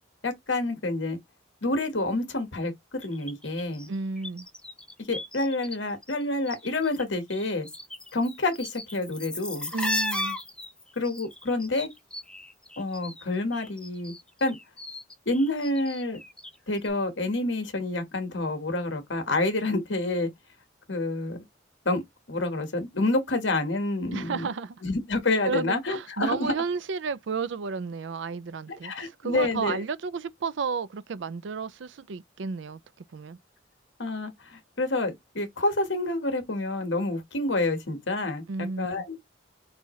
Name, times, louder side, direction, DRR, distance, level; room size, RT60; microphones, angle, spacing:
voice 1, 0.2-1.2 1.6-2.7 3.0-3.9 5.1-7.7 8.1-9.7 10.9-11.9 12.8-14.1 14.4-14.6 15.2-16.2 16.7-20.3 20.9-21.4 21.8-22.0 22.3-24.5 24.8-26.5 28.7-29.8 34.0-38.4 38.8-39.2, left 2 dB, 70° left, 1.6 m, -28 dB
sound 1, 3.0-5.8 6.0-7.0 7.3-13.2 13.5-16.6 16.8-16.9, left 1 dB, 5° left, 0.7 m, -36 dB
voice 2, 3.9-4.5 9.7-10.4 24.1-24.8 25.4-32.8 33.1-33.4 38.5-39.0, right 5 dB, 70° right, 0.4 m, -32 dB
5.5 x 2.9 x 3.1 m
head